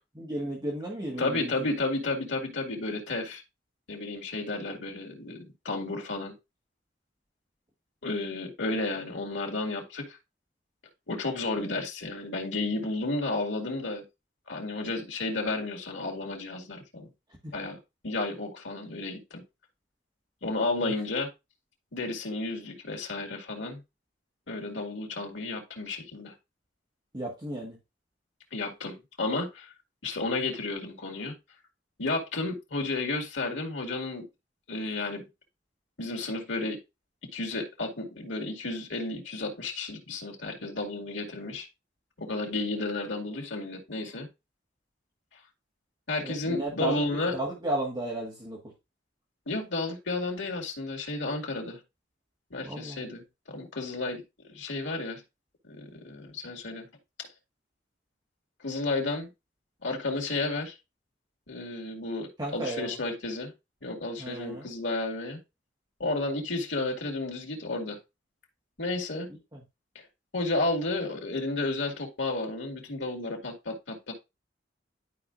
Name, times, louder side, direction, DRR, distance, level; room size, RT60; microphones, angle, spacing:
voice 1, 0.1-1.7 17.4-17.5 20.8-20.9 27.1-27.8 46.2-48.7 52.6-53.2 62.4-63.0 64.2-64.7 69.5-69.6, right 1 dB, 25° right, 1.6 m, -34 dB
voice 2, 1.2-3.4 3.9-6.3 8.0-10.2 11.1-14.0 14.5-17.1 17.5-17.8 18.0-19.4 20.4-21.3 21.9-23.8 24.5-26.3 28.5-29.7 30.0-31.3 32.0-34.3 34.7-35.2 36.0-36.8 37.3-41.7 42.2-44.3 46.1-47.3 49.5-51.8 52.5-53.2 53.5-55.2 55.6-56.9 58.6-59.3 59.8-60.7 61.5-63.5 63.8-65.4 66.0-68.0 68.8-69.3 70.3-74.1, left 2 dB, 90° left, 2.1 m, -32 dB
11.5 x 4.7 x 2.5 m
head